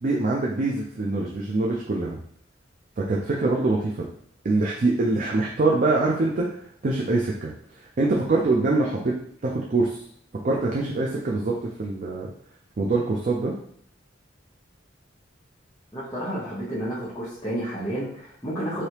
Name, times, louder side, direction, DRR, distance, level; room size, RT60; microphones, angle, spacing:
voice 1, 0.0-2.2 3.0-4.1 4.4-7.5 8.0-9.1 9.4-10.0 10.4-12.3 12.8-13.5, right 2 dB, 40° right, -2 dB, 0.4 m, -24 dB
voice 2, 15.9-18.9, right 1 dB, 15° left, -12 dB, 0.9 m, -31 dB
3.3 x 2.7 x 2.9 m, 0.65 s
head